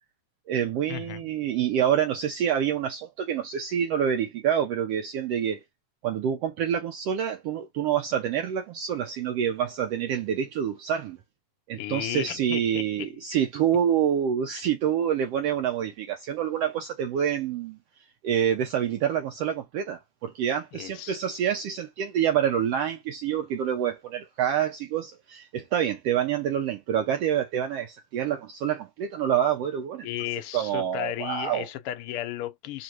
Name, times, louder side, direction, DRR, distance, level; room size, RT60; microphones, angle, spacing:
voice 1, 0.5-5.6 6.0-11.2 11.7-17.8 18.2-30.1 30.5-31.7, right 9 dB, 80° right, 1.4 m, -27 dB
voice 2, 11.8-13.2 20.7-21.4 30.0-32.8, left 13 dB, 75° left, 1.3 m, -34 dB
4.9 x 2.5 x 3.0 m
omnidirectional pair, 3.6 m